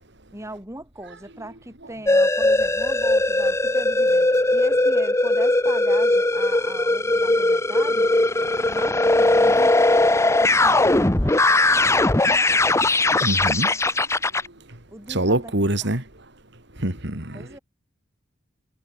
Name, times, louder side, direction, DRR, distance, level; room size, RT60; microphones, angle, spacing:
voice 1, 0.3-8.2 8.7-11.4 12.3-12.6 14.9-15.5 15.8-15.9 17.3-17.6, right 1 dB, 15° right, 5.2 m, -39 dB
sound 1, 2.1-14.5, left 2 dB, 15° left, 0.9 m, -19 dB
voice 2, 13.2-13.7 15.1-16.0 16.8-17.6, right 1 dB, 60° right, 4.0 m, -24 dB
head